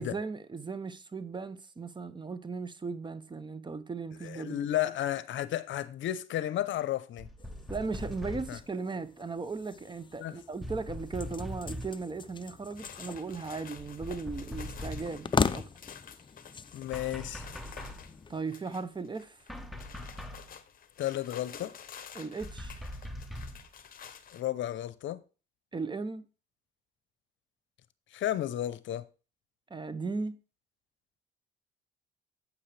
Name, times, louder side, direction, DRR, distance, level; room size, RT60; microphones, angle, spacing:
voice 1, 0.0-4.6 7.7-15.7 18.3-19.4 22.1-22.8 25.7-26.2 29.7-30.4, right 4 dB, 20° right, 0.7 m, -37 dB
voice 2, 4.2-7.3 8.5-8.6 10.2-10.4 16.7-17.5 21.0-21.7 24.3-25.2 28.1-29.0, left 12 dB, 65° left, 0.7 m, -33 dB
sound 1, 7.2-8.7 10.6-12.1 13.8-15.3 16.9-18.1 19.5-20.5 22.4-23.7, left 1 dB, ahead, 1.1 m, -41 dB
sound 2, 7.4-18.4, left 5 dB, 25° left, 0.5 m, -39 dB
sound 3, 12.8-24.4, left 8 dB, 45° left, 1.0 m, -50 dB
8.5 x 8.1 x 3.3 m
cardioid pair, 90°, 21 cm